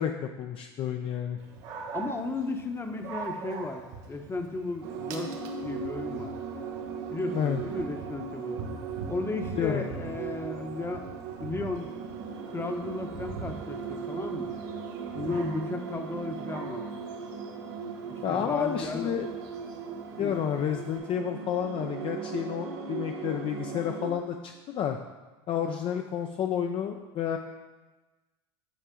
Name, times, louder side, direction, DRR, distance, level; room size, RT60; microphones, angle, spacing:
voice 1, 0.0-1.4 7.3-7.6 9.6-10.0 18.2-19.3 20.2-25.0 25.5-27.4, left 9 dB, 40° left, 4 dB, 0.4 m, -30 dB
Dog, 1.4-21.0, right 5 dB, 60° right, 1.2 m, -45 dB
voice 2, 1.9-5.3 5.6-6.4 7.1-8.6 9.1-11.1 11.4-12.1 12.5-14.5 15.1-16.9 18.1-19.2 20.2-20.4, left 3 dB, 15° left, 5 dB, 0.8 m, -34 dB
sound 1, 4.8-24.1, right 6 dB, 80° right, 0.8 m, -38 dB
8.3 x 4.8 x 3.7 m, 1.2 s
hypercardioid pair, 90°, 14 cm